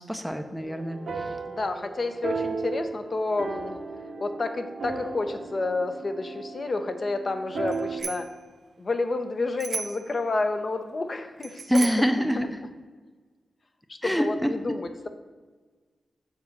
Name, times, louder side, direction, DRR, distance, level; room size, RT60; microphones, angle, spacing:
voice 1, 0.1-1.3 11.7-12.6 14.0-14.5, equal, ahead, 7 dB, 0.6 m, -25 dB
sound 1, 0.6-8.0, right 4 dB, 80° right, 1.3 m, -35 dB
voice 2, 1.5-3.8 4.2-8.3 8.8-11.9 12.3-12.5 13.9-15.1, left 3 dB, 45° left, 7 dB, 0.7 m, -30 dB
Bicycle bell, 7.7-8.4 9.6-10.1 11.4-12.2, right 4 dB, 60° right, 0.5 m, -35 dB
7.2 x 4.0 x 6.6 m, 1.4 s
wide cardioid pair, 90°, 0 cm